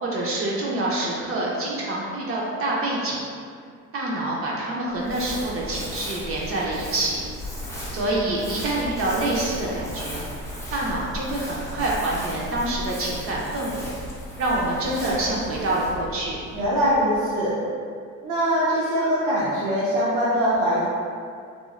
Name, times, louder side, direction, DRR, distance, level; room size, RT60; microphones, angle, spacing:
voice 1, 0.0-3.2 3.9-7.2 7.9-10.2 10.7-13.9 14.4-16.4, right 1 dB, 45° right, -5 dB, 0.5 m, -26 dB
Crumpling crinkling, 4.9-17.4, equal, 10° left, 0.5 m, -36 dB
voice 2, 16.5-17.6 18.2-20.8, equal, 90° right, -8 dB, 0.7 m, -22 dB
3.0 x 2.3 x 2.3 m, 2.3 s
cardioid pair, 135°, 31 cm